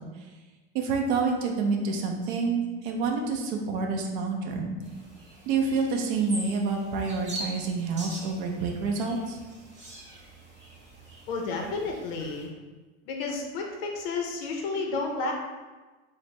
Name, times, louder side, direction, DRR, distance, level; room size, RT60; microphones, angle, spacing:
voice 1, 0.7-4.8 5.5-9.4, right 4 dB, 50° right, 2 dB, 0.5 m, -28 dB
sound 1, 4.8-12.5, right 1 dB, 20° right, 0.8 m, -43 dB
voice 2, 11.3-12.5 13.1-15.3, left 3 dB, 60° left, 1 dB, 0.6 m, -31 dB
4.3 x 2.0 x 3.1 m, 1.2 s
supercardioid pair, 165°, 33 cm